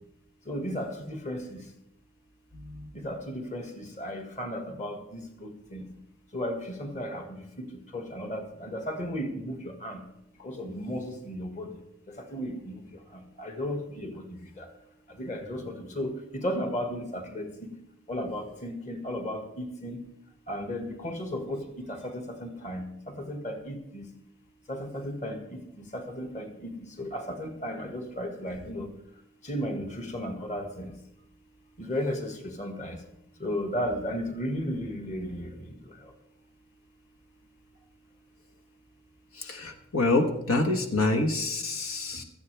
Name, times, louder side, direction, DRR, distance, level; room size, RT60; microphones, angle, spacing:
voice 1, 0.5-1.6 3.0-5.8 6.3-7.7 7.9-10.0 10.4-11.7 12.1-12.8 13.4-14.7 15.2-17.7 18.1-20.0 20.5-24.1 24.7-25.4 25.8-28.9 29.5-30.9 31.8-33.0 33.4-35.6, equal, 35° left, 4 dB, 1.9 m, -34 dB
voice 2, 2.5-2.9 39.4-42.2, left 2 dB, 90° left, 6 dB, 1.4 m, -27 dB
17.0 x 14.0 x 3.5 m, 0.79 s
head